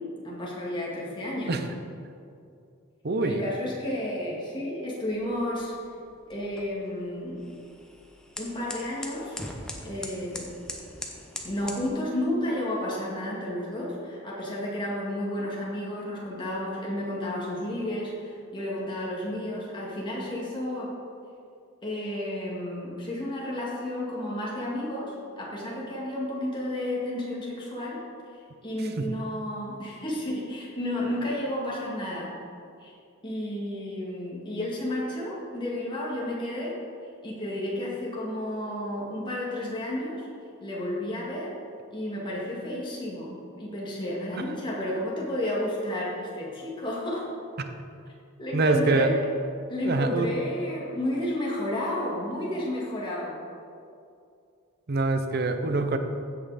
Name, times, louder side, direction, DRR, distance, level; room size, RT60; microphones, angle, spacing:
voice 1, 0.2-1.6 3.2-5.7 6.3-7.4 8.4-9.4 9.8-10.5 11.4-20.9 21.8-28.0 28.6-32.3 32.8-32.9 33.2-36.7 37.2-40.3 40.6-41.5 41.9-47.2 48.4-49.1 49.7-53.4, left 1 dB, 25° left, -4 dB, 2.1 m, -32 dB
voice 2, 3.0-3.5 29.0-29.1 44.3-44.4 47.6-47.7 48.5-49.1 49.8-50.3 54.9-56.0, right 3 dB, 50° right, 7 dB, 0.7 m, -25 dB
sound 1, 5.1-11.9, left 1 dB, 5° left, 0.8 m, -42 dB
15.5 x 5.6 x 4.2 m, 2.4 s
head